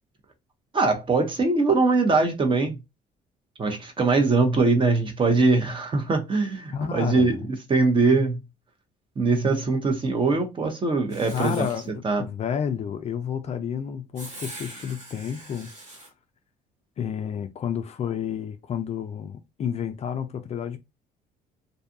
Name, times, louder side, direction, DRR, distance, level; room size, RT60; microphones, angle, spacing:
voice 1, 0.7-2.8 3.6-8.4 9.2-11.7 12.0-12.2, right 3 dB, 30° right, 0.7 m, -22 dB
voice 2, 6.7-7.5 11.3-15.7 17.0-20.8, left 8 dB, 40° left, 0.4 m, -30 dB
Writing, 11.1-11.9 14.2-16.1, right 2 dB, 45° right, 1.2 m, -42 dB
2.6 x 2.3 x 2.6 m
cardioid pair, 110°, 17 cm